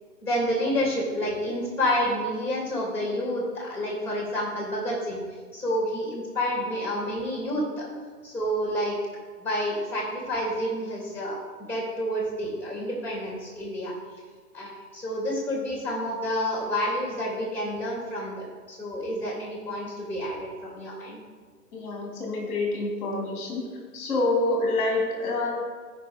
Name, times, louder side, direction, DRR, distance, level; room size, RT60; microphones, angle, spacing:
voice 1, 0.2-5.2 5.5-7.9 8.2-8.9 9.4-13.9 14.5-18.3 18.7-21.2, equal, 5° left, -3 dB, 2.9 m, -29 dB
voice 2, 21.7-23.7 23.9-25.5, left 2 dB, 30° left, 0 dB, 2.0 m, -27 dB
14.5 x 5.3 x 3.6 m, 1.5 s
figure-of-eight pair, 120°, 47 cm